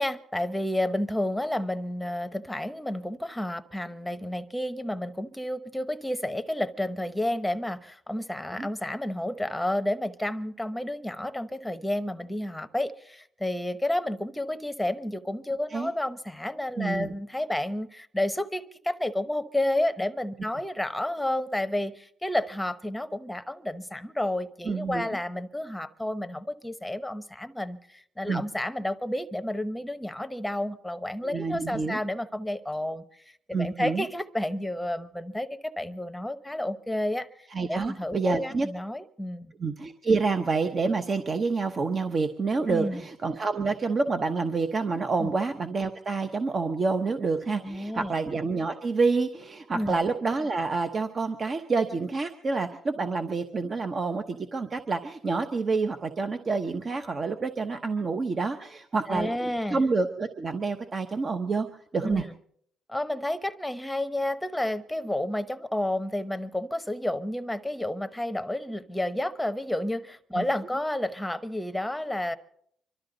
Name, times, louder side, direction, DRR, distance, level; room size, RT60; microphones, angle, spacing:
voice 1, 0.0-33.0 33.5-39.5 42.7-43.0 45.2-45.3 47.6-48.1 49.7-50.0 59.1-59.8 62.0-62.3 62.9-72.4, left 1 dB, 5° left, 10 dB, 0.9 m, -31 dB
voice 2, 16.8-17.1 24.7-25.0 28.3-28.4 31.2-32.0 33.5-34.0 37.5-38.7 39.6-61.7 61.9-62.2 70.3-70.4, right 4 dB, 40° right, 7 dB, 0.9 m, -28 dB
25.5 x 12.5 x 3.9 m, 0.66 s
cardioid pair, 90°, 0 cm